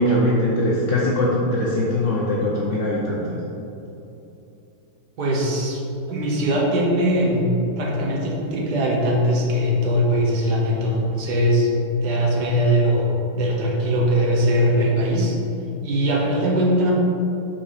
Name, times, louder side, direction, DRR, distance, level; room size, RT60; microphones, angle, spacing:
voice 1, 0.0-3.4, left 1 dB, 75° left, -4 dB, 0.6 m, -21 dB
voice 2, 5.2-5.8 6.1-11.7 12.0-15.4 15.8-16.9, equal, 60° right, -2 dB, 1.6 m, -21 dB
5.9 x 4.4 x 4.8 m, 2.9 s
omnidirectional pair, 2.2 m